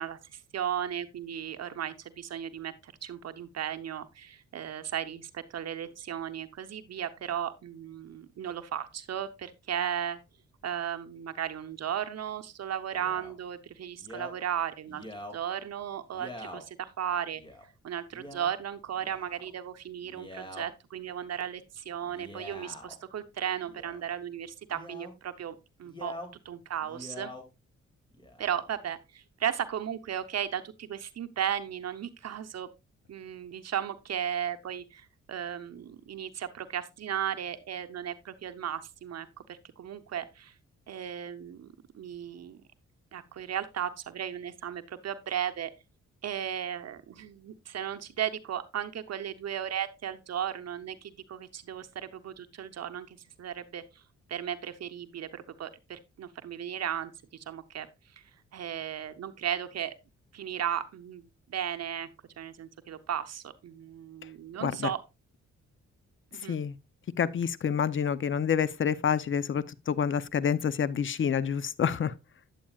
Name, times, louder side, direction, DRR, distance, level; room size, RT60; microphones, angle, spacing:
voice 1, 0.0-10.2 10.6-15.0 15.3-17.4 17.8-26.1 26.4-27.3 28.4-32.7 33.1-40.5 40.9-42.6 43.1-45.7 46.2-53.8 54.3-57.9 58.2-58.3 58.5-59.9 60.3-62.1 62.4-65.0 66.3-66.6, right 9 dB, 60° right, 0.8 m, -35 dB
Male speech man speaking, 12.9-13.3 14.0-14.3 14.9-15.4 16.1-16.6 17.4-17.6 18.1-18.5 18.9-19.5 20.0-20.6 22.0-23.0 23.6-24.1 24.7-25.1 25.8-26.3 26.8-27.4 28.1-28.7, left 1 dB, 15° left, 2.2 m, -44 dB
voice 2, 67.2-72.1, left 7 dB, 45° left, 0.6 m, -28 dB
9.0 x 8.5 x 2.3 m
cardioid pair, 65°, 29 cm